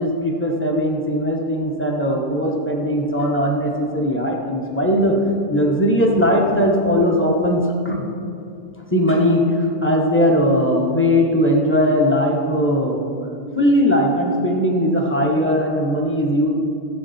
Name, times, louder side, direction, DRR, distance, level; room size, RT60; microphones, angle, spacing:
voice 1, 0.0-5.2 5.5-8.0 8.9-13.1 13.5-16.5, equal, 10° left, -1 dB, 1.1 m, -19 dB
13.0 x 7.7 x 4.3 m, 2.5 s
omnidirectional pair, 1.6 m